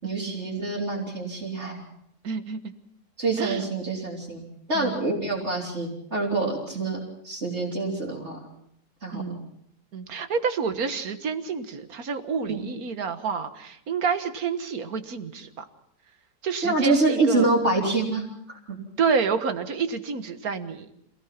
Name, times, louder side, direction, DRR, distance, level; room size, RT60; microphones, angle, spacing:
voice 1, 0.0-1.8 3.2-4.4 4.7-7.0 7.2-8.4 9.0-9.4 12.5-12.6 16.6-18.8, right 3 dB, 40° right, -7 dB, 4.0 m, -26 dB
voice 2, 2.2-2.7 3.4-3.7 4.7-5.1 9.1-9.5 9.9-15.7 16.4-17.5 19.0-20.9, right 5 dB, 60° right, 9 dB, 1.8 m, -29 dB
27.0 x 18.0 x 5.9 m, 0.72 s
omnidirectional pair, 1.8 m